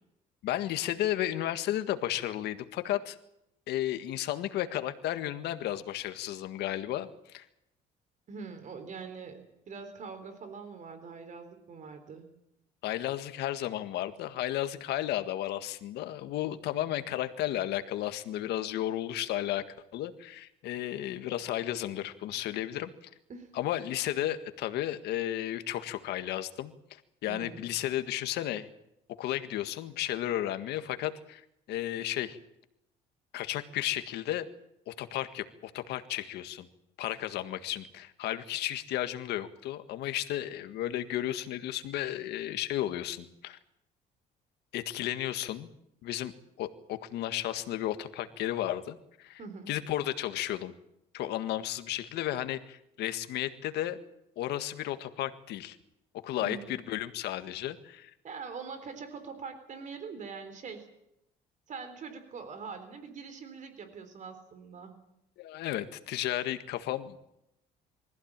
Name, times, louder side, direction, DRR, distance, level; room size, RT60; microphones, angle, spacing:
voice 1, 0.4-3.2 3.7-7.5 12.8-19.6 19.9-22.9 23.5-28.7 29.2-31.4 31.7-32.4 33.3-34.5 34.9-36.7 37.0-43.6 44.7-45.7 46.0-49.4 49.7-50.7 51.1-54.0 54.4-55.8 56.2-58.1 65.4-67.2, left 13 dB, 80° left, 9 dB, 1.7 m, -33 dB
voice 2, 8.3-12.3 23.3-23.6 27.3-27.7 49.4-49.7 56.4-56.7 58.2-60.9 61.7-65.0, right 5 dB, 50° right, 9 dB, 3.7 m, -43 dB
23.5 x 15.5 x 8.9 m, 0.82 s
cardioid pair, 110°, 17 cm